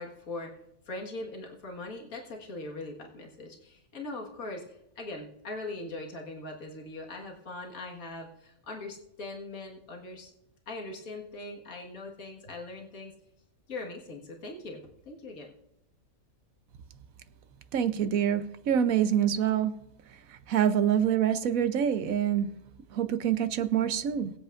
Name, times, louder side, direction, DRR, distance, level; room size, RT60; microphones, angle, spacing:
voice 1, 0.0-10.3 10.7-13.1 13.7-15.5, left 2 dB, 80° left, 0 dB, 2.1 m, -41 dB
voice 2, 17.7-19.7 20.5-22.5 22.9-24.3, right 9 dB, 75° right, 11 dB, 1.2 m, -26 dB
23.0 x 8.1 x 2.5 m, 0.81 s
omnidirectional pair, 1.5 m